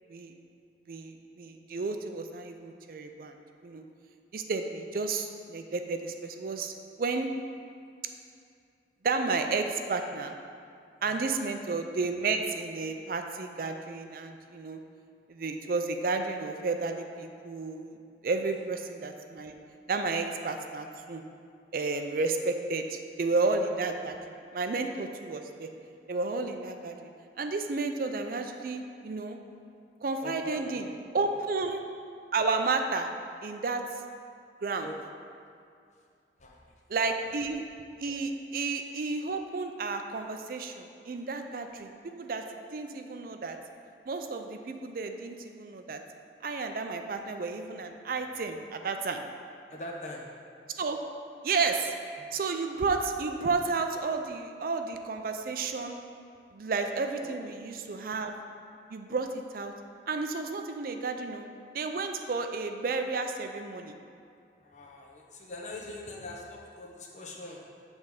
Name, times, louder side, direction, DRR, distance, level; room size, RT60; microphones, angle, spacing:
voice 1, 0.9-3.8 4.3-7.3 9.0-10.3 11.0-14.8 15.3-18.0 18.2-19.5 19.9-21.2 21.7-24.2 24.5-25.7 26.1-27.1 27.4-29.4 30.0-30.9 31.1-31.8 32.3-33.1 33.4-33.8 34.6-34.9 36.9-37.6 38.0-42.4 42.7-43.6 44.1-46.0 46.4-49.2 50.8-51.0 51.4-51.9 52.3-56.0 56.5-58.3 58.9-59.7 60.1-61.5 61.7-63.9, right 3 dB, 55° right, 6 dB, 0.4 m, -32 dB
voice 2, 11.0-11.3 18.4-18.6 30.2-30.9 31.2-31.3 34.8-35.0 36.4-36.7 49.7-50.3 55.2-55.3 57.2-57.3 64.6-67.6, left 2 dB, 40° left, -1 dB, 0.9 m, -42 dB
7.5 x 3.5 x 6.4 m, 2.4 s
head